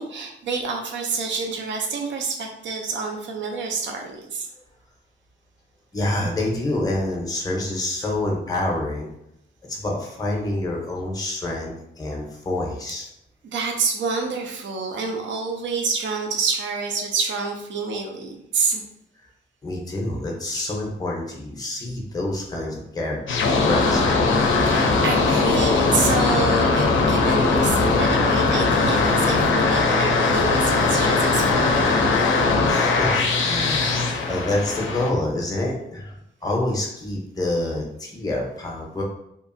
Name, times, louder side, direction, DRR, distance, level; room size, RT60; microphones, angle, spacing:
voice 1, 0.0-4.5 13.4-18.8 20.5-20.6 23.6-23.7 24.6-32.0, right 4 dB, 70° right, 2 dB, 0.4 m, -27 dB
voice 2, 5.9-9.1 9.6-13.0 19.6-24.3 32.3-36.1 36.4-39.0, left 1 dB, 20° left, -1 dB, 0.5 m, -27 dB
sound 1, 23.3-35.1, left 3 dB, 90° left, 0.4 m, -20 dB
2.8 x 2.4 x 2.5 m, 0.78 s
wide cardioid pair, 160°, 20 cm